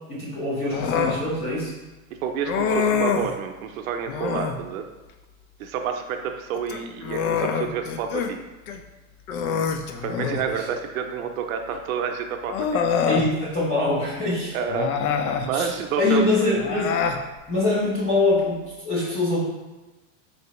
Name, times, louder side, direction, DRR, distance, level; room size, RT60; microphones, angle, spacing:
voice 1, 0.1-1.7 10.5-10.7 13.1-14.5 15.5-15.7 16.0-16.9 17.5-19.4, left 2 dB, 15° left, -6 dB, 0.5 m, -23 dB
Human voice, 0.7-1.2 2.4-3.3 4.1-4.6 6.5-8.3 8.7-8.8 9.3-10.5 11.7-11.8 12.5-13.3 14.7-15.5 16.6-17.2, left 6 dB, 85° left, 0.5 m, -25 dB
voice 2, 2.1-4.9 5.6-8.4 10.0-12.8 14.5-15.0 15.4-16.2, right 7 dB, 75° right, 5 dB, 0.6 m, -29 dB
3.9 x 3.2 x 2.9 m, 1.1 s
supercardioid pair, 170°, 41 cm